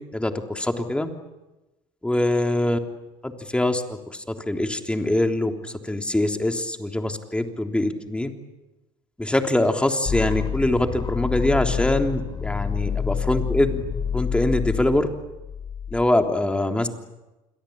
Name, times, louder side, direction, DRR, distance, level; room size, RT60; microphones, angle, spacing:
voice 1, 0.1-1.1 2.0-2.8 3.2-8.3 9.2-13.8 14.1-15.1 15.9-16.9, left 1 dB, 10° left, 5 dB, 3.5 m, -23 dB
sound 1, 10.1-16.0, left 7 dB, 35° left, 3.2 m, -28 dB
28.0 x 22.0 x 8.9 m, 1.0 s
supercardioid pair, 75°, 13 cm